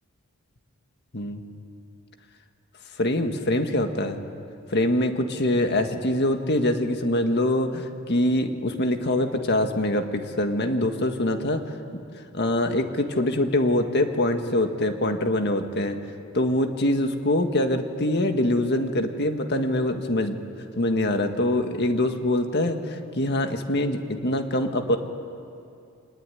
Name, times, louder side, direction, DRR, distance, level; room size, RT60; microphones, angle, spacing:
voice 1, 3.0-4.2 4.7-11.6 12.3-16.0 16.3-20.4 20.8-25.0, left 1 dB, 50° left, 6 dB, 1.8 m, -24 dB
24.5 x 19.5 x 9.9 m, 2.5 s
head